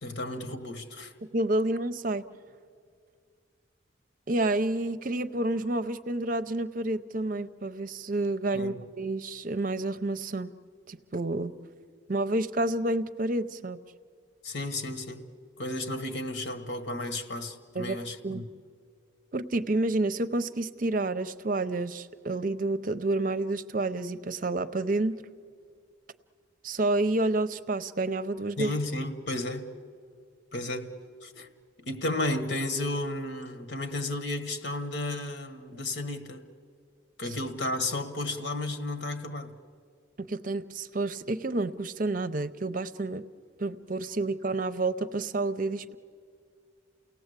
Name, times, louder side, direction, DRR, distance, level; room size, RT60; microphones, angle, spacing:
voice 1, 0.0-1.1 8.5-8.8 14.4-15.3 15.6-18.5 28.6-29.7 30.5-30.9 31.2-31.5 31.8-36.5 37.2-39.5, left 2 dB, 70° left, 1.6 m, -33 dB
voice 2, 1.3-2.2 4.3-10.5 10.9-11.5 12.1-13.8 17.7-18.0 18.2-18.4 19.3-25.2 26.6-28.7 40.2-43.2 43.6-45.9, right 2 dB, 45° right, 0.6 m, -29 dB
29.5 x 17.5 x 8.2 m
head